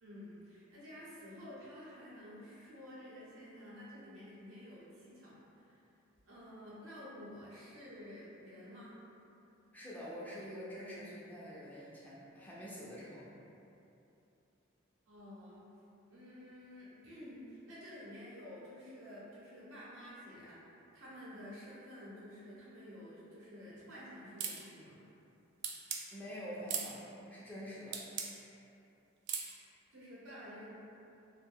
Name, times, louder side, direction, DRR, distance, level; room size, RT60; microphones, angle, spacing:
voice 1, 0.0-5.8 6.3-9.0 15.1-15.7 16.1-25.0 29.9-30.8, equal, 85° right, -8 dB, 0.8 m, -51 dB
voice 2, 9.7-13.3 26.1-28.0, equal, 10° left, -7 dB, 0.4 m, -46 dB
sound 1, 24.4-24.6 25.6-26.0 26.7-26.9 27.9-28.3 29.3-29.5, right 7 dB, 60° right, 0.3 m, -37 dB
2.5 x 2.2 x 3.3 m, 2.8 s
head